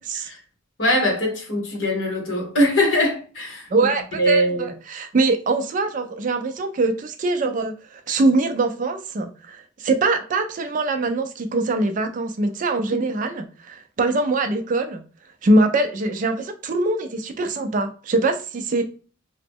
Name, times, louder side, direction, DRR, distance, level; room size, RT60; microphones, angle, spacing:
voice 1, 0.8-3.7 4.2-4.7, equal, 65° left, 1.1 m, -21 dB
voice 2, 3.7-15.0 15.4-18.8, right 2 dB, 40° right, 0.3 m, -23 dB
2.9 x 2.0 x 3.5 m
head